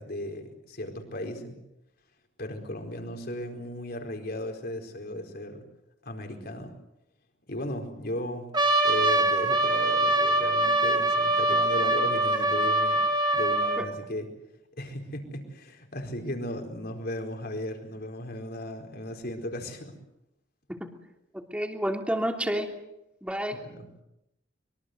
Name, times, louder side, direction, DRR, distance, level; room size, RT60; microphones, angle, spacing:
voice 1, 0.0-1.6 2.4-5.6 6.0-6.7 7.5-8.5 8.8-13.0 13.3-14.3 14.8-19.9 23.5-24.0, left 1 dB, 55° left, 4 dB, 4.5 m, -36 dB
Trumpet, 8.5-13.9, right 1 dB, 25° right, 3.6 m, -24 dB
voice 2, 21.3-22.7 23.2-23.6, equal, 5° right, 3 dB, 3.0 m, -30 dB
25.0 x 23.0 x 8.0 m, 0.86 s
head